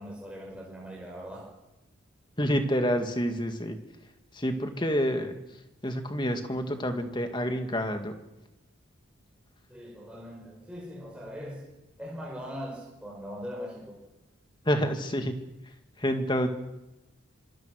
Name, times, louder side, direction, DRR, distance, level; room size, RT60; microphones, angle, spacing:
voice 1, 0.0-1.5 9.7-11.7 12.0-14.0, equal, 5° right, -3 dB, 5.4 m, -40 dB
voice 2, 2.4-3.8 4.3-5.4 5.8-8.2 14.6-15.4 16.0-16.5, equal, 20° left, 6 dB, 2.1 m, -28 dB
26.0 x 22.5 x 6.5 m, 0.96 s
head